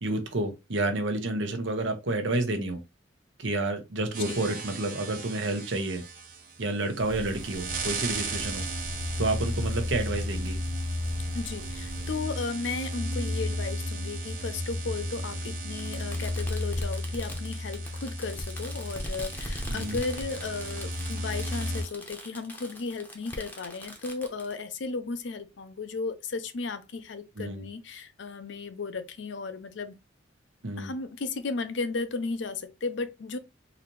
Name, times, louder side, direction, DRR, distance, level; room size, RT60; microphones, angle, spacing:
voice 1, 0.0-2.8 3.4-6.0 6.6-8.6 9.2-10.6 19.7-20.0 27.4-27.7 30.6-30.9, right 2 dB, 75° right, 0.9 m, -30 dB
sound 1, 4.1-21.8, equal, 50° right, 0.9 m, -34 dB
sound 2, 7.0-12.2, equal, 25° right, 0.6 m, -42 dB
voice 2, 11.3-30.0 30.8-33.4, left 4 dB, 65° left, 0.5 m, -35 dB
Fireworks, 11.5-11.6 12.7-12.8 14.0-14.1 15.8-24.5, left 1 dB, 10° left, 0.7 m, -40 dB
4.0 x 2.7 x 3.0 m
head